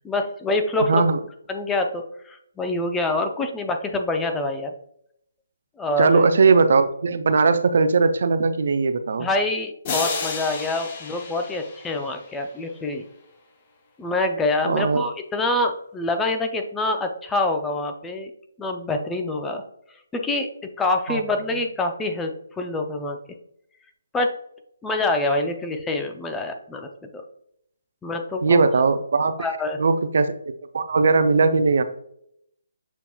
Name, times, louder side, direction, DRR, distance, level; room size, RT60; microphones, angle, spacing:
voice 1, 0.0-1.1 1.5-4.7 5.8-6.2 9.2-13.0 14.0-18.3 18.6-19.6 20.1-20.5 20.8-22.3 22.6-23.2 24.1-24.3 24.8-26.9 28.0-28.6 29.4-29.8, left 2 dB, 10° left, 4 dB, 0.4 m, -25 dB
voice 2, 0.9-1.2 6.0-9.3 14.6-15.0 21.1-21.2 28.4-29.3 29.8-30.4 30.7-31.8, right 4 dB, 60° right, 10 dB, 0.4 m, -19 dB
sound 1, 9.8-12.7, left 4 dB, 35° left, 0.7 m, -31 dB
6.9 x 2.9 x 2.3 m, 0.71 s
figure-of-eight pair, 145°, 0 cm